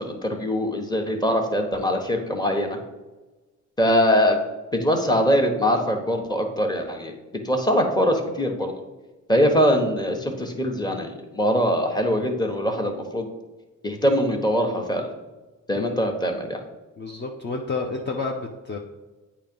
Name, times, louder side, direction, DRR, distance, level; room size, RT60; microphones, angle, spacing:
voice 1, 0.0-2.8 3.8-4.4 4.7-7.1 7.4-8.7 9.3-13.3 13.8-15.1 15.7-16.6, equal, 15° left, 3 dB, 1.1 m, -22 dB
voice 2, 17.0-18.8, left 3 dB, 35° left, 1 dB, 0.7 m, -30 dB
8.5 x 2.9 x 5.3 m, 1.2 s
cardioid pair, 90°, 30 cm